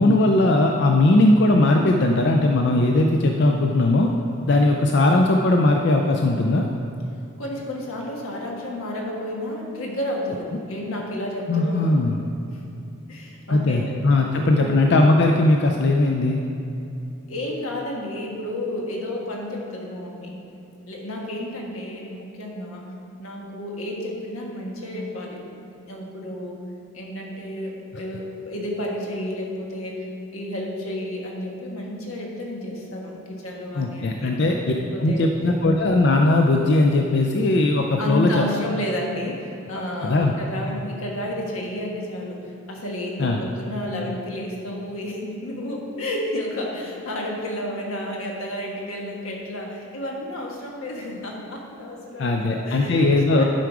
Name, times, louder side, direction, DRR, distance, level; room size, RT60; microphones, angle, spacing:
voice 1, 0.0-4.1 4.5-6.6 11.5-12.2 13.5-16.4 33.7-34.7 35.0-38.4 40.0-40.3 43.2-43.4 52.2-53.4, left 2 dB, 55° left, 2 dB, 0.4 m, -19 dB
voice 2, 7.4-12.1 12.5-12.6 13.1-14.0 14.3-15.1 17.3-20.4 20.9-22.9 23.2-25.4 25.8-26.6 26.9-34.3 34.7-35.3 38.0-53.4, left 1 dB, 90° left, -1 dB, 1.5 m, -31 dB
11.5 x 4.8 x 4.7 m, 2.8 s
head